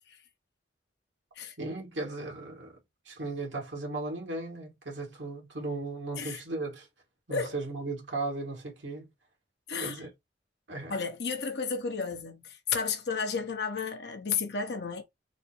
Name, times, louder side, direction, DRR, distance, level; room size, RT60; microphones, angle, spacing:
voice 1, 1.6-2.8 3.0-6.9 7.3-9.1 9.8-10.1 10.7-11.0, right 2 dB, 80° right, 1.8 m, -36 dB
voice 2, 9.7-10.0 10.9-15.0, left 5 dB, 60° left, 0.9 m, -32 dB
4.1 x 2.0 x 4.4 m
head